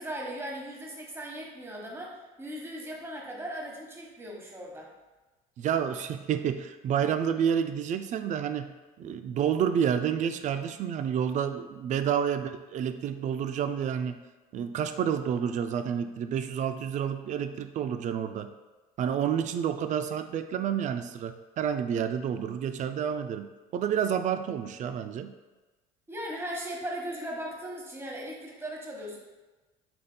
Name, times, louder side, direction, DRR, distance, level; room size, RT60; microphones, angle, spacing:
voice 1, 0.0-4.9 26.1-29.2, right 1 dB, 15° right, -2 dB, 1.2 m, -38 dB
voice 2, 5.6-8.7 9.0-14.2 14.5-18.5 19.0-25.3, right 8 dB, 45° right, 9 dB, 0.4 m, -29 dB
5.8 x 3.5 x 2.2 m, 1.2 s
hypercardioid pair, 75°, 18 cm